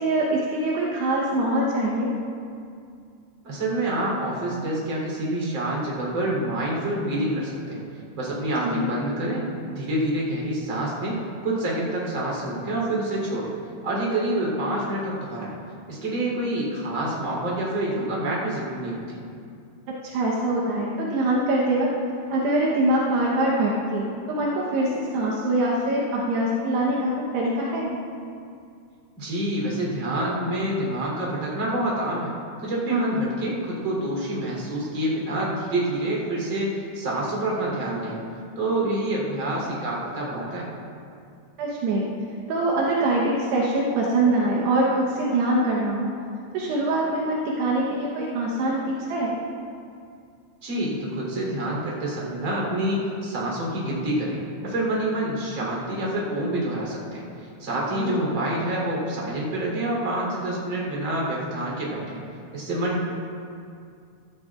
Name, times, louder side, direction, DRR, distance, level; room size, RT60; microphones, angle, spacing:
voice 1, 0.0-2.1 8.6-8.9 19.9-21.9 22.3-28.0 32.9-33.2 41.6-42.1 42.5-46.1 46.5-49.4 57.9-58.1, right 1 dB, 75° right, -4 dB, 3.0 m, -24 dB
voice 2, 3.4-7.8 8.1-13.5 13.8-15.6 15.9-19.2 29.2-32.3 32.6-38.2 38.6-40.7 50.6-62.2 62.5-63.1, right 1 dB, 30° right, -4 dB, 3.6 m, -27 dB
16.5 x 13.5 x 2.4 m, 2.4 s
omnidirectional pair, 4.9 m